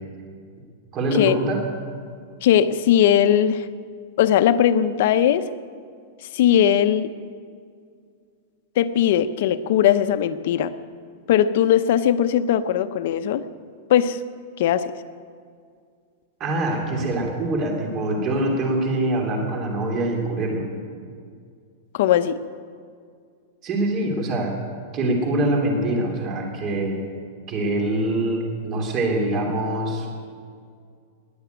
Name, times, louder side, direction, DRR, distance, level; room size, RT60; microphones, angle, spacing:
voice 1, 0.9-1.6 16.4-20.7 23.6-24.5 24.9-27.0 27.5-30.1, right 1 dB, 30° right, 2 dB, 2.9 m, -24 dB
voice 2, 2.4-3.7 4.2-5.5 6.3-7.1 8.8-10.7 11.3-13.4 13.9-14.2 14.6-14.9 21.9-22.4, left 10 dB, 55° left, 11 dB, 0.7 m, -19 dB
20.0 x 6.9 x 9.3 m, 2.2 s
supercardioid pair, 160°, 0 cm